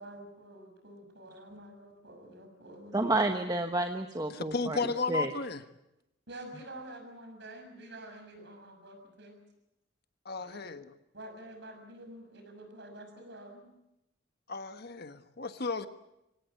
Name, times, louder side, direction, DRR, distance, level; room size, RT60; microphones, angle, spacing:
voice 1, 0.0-3.2 6.3-9.4 10.4-10.7 11.1-13.6, right 1 dB, 60° right, 5 dB, 6.4 m, -48 dB
voice 2, 2.9-5.3, right 2 dB, 20° right, 5 dB, 1.2 m, -30 dB
voice 3, 4.3-5.6 10.2-10.9 14.5-15.9, left 4 dB, 50° left, 10 dB, 1.4 m, -34 dB
25.0 x 17.5 x 9.4 m, 0.88 s
head